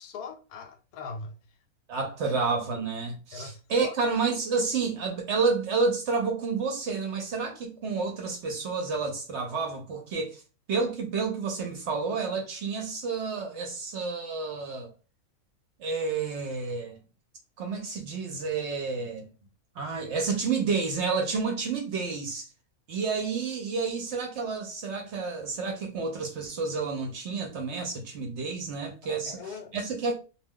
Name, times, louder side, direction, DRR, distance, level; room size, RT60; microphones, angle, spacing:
voice 1, 0.0-1.4 2.2-2.4 3.3-3.9 29.0-29.7, left 4 dB, 90° left, 1.1 m, -41 dB
voice 2, 1.9-10.4 10.7-14.9 15.8-17.0 17.6-19.3 19.8-22.4 22.9-30.1, right 4 dB, 65° right, 0.8 m, -30 dB
2.3 x 2.3 x 3.5 m
omnidirectional pair, 1.5 m